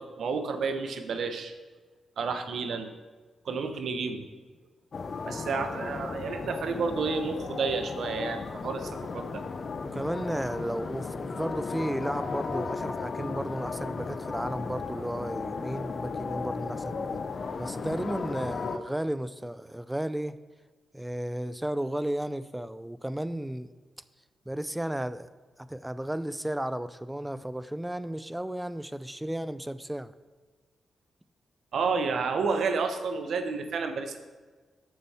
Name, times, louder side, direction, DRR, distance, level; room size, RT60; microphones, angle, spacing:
voice 1, 0.0-1.5 2.2-2.9 3.4-4.2 5.3-9.4 31.7-34.2, right 4 dB, 70° right, 8 dB, 0.9 m, -30 dB
sound 1, 4.9-18.8, left 4 dB, 50° left, 0.6 m, -35 dB
voice 2, 9.8-17.2 17.6-20.4 20.9-23.7 24.5-25.3 25.6-30.1, right 1 dB, 10° right, 14 dB, 0.4 m, -34 dB
9.6 x 6.9 x 4.2 m, 1.4 s
cardioid pair, 85°, 0 cm